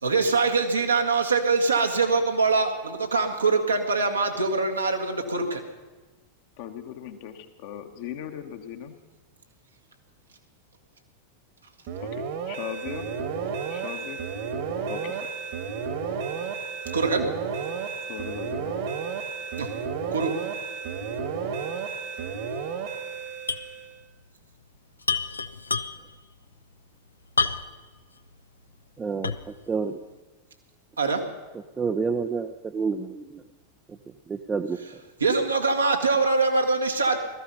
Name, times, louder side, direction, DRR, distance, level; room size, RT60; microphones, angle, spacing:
voice 1, 0.0-5.6 16.9-17.3 19.6-19.7 20.1-20.3 31.0-31.2 35.2-37.2, right 4 dB, 75° right, 3 dB, 1.7 m, -23 dB
voice 2, 6.6-8.9 12.0-12.1 12.5-13.1 13.7-14.2 14.9-15.2 18.0-18.8, left 10 dB, 50° left, 5 dB, 1.5 m, -38 dB
sound 1, 11.9-24.0, right 6 dB, 50° right, 1.8 m, -32 dB
sound 2, 23.5-23.7 24.0-24.1 25.0-26.2 27.4-27.9 28.4-28.5 29.2-29.6, left 4 dB, 80° left, 0.6 m, -28 dB
voice 3, 29.0-30.0 31.8-33.4 33.9-34.0 34.3-34.8, right 5 dB, 15° right, 5 dB, 0.7 m, -29 dB
17.5 x 14.0 x 5.5 m, 1.3 s
figure-of-eight pair, 90°, 0 cm